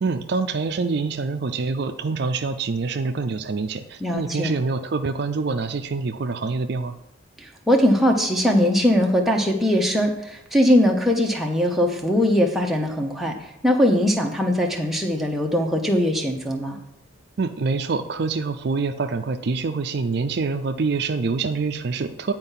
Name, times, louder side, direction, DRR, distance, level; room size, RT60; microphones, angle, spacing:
voice 1, 0.0-6.9 17.4-22.3, right 4 dB, 55° right, 9 dB, 0.4 m, -26 dB
voice 2, 4.0-4.5 7.7-13.3 13.6-16.8, equal, ahead, 0 dB, 0.9 m, -20 dB
9.6 x 4.5 x 5.6 m, 0.83 s
head